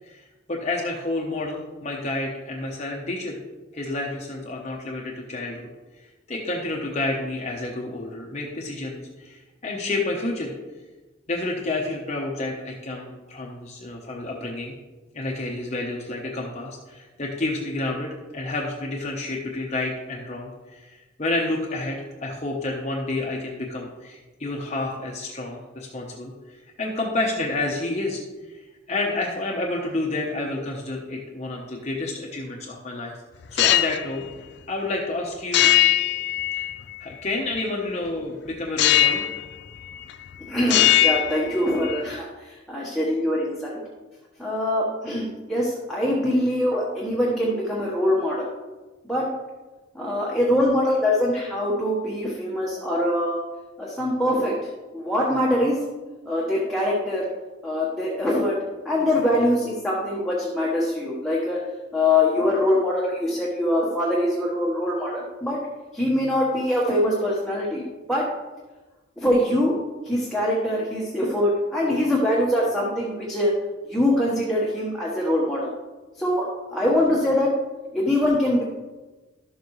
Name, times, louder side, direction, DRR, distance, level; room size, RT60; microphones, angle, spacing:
voice 1, 0.0-3.4 3.7-5.7 6.3-10.5 11.3-14.7 15.1-28.2 28.5-28.6 28.9-33.2 33.5-34.2 34.7-35.7 36.6-36.7 37.0-39.2, left 2 dB, 35° left, -1 dB, 1.0 m, -29 dB
sound 1, 33.4-34.0 35.5-37.0 38.8-39.5 39.8-40.3 40.6-42.0, left 13 dB, 55° left, 0.4 m, -20 dB
voice 2, 40.5-43.8 44.4-48.4 49.1-49.3 49.9-53.4 53.8-54.5 54.9-55.8 56.2-57.3 57.6-58.6 58.8-61.6 61.9-65.6 65.9-68.3 69.2-69.7 70.0-73.5 73.8-75.7 76.2-77.5 77.9-78.6, left 1 dB, ahead, -6 dB, 1.3 m, -23 dB
12.0 x 7.2 x 3.2 m, 1.2 s
head